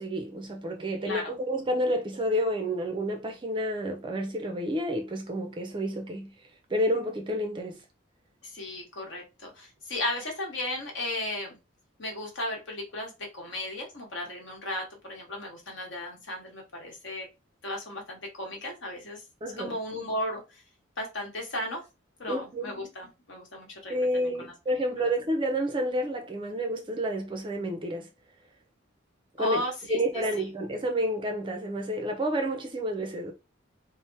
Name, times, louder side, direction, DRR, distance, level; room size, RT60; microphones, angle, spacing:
voice 1, 0.0-6.3 6.7-7.8 19.4-19.8 22.3-22.8 23.9-28.1 29.4-29.6 29.9-33.3, equal, 25° right, 0.4 m, -30 dB
voice 2, 1.0-1.4 8.4-11.6 12.0-17.3 17.6-19.2 19.6-20.6 21.0-21.8 22.2-24.5 29.4-30.2, left 1 dB, 60° left, 1.1 m, -35 dB
3.2 x 2.0 x 2.6 m
head